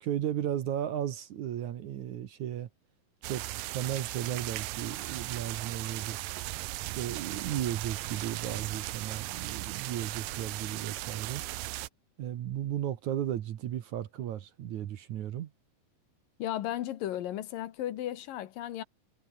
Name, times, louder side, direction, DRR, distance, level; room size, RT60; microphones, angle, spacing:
voice 1, 0.0-2.7 3.2-3.4 3.7-6.2 6.8-11.4 12.2-15.5, right 11 dB, 60° right, 2.3 m, -35 dB
sound 1, 3.2-11.9, right 18 dB, 75° right, 2.3 m, -37 dB
voice 2, 16.4-18.8, left 12 dB, 70° left, 2.8 m, -35 dB
omnidirectional pair, 4.3 m